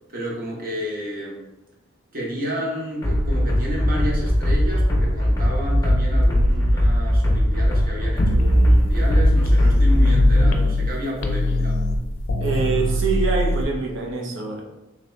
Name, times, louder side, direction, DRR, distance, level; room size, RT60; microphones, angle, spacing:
voice 1, 0.1-1.4 2.1-11.8, equal, 45° right, -3 dB, 1.0 m, -31 dB
sound 1, 3.0-10.5, equal, 15° left, 0.7 m, -20 dB
sound 2, 8.2-10.9 11.2-13.6, left 1 dB, 75° left, 0.5 m, -19 dB
voice 2, 12.4-14.6, right 3 dB, 70° right, 0 dB, 0.7 m, -25 dB
3.6 x 2.9 x 3.2 m, 1.0 s
head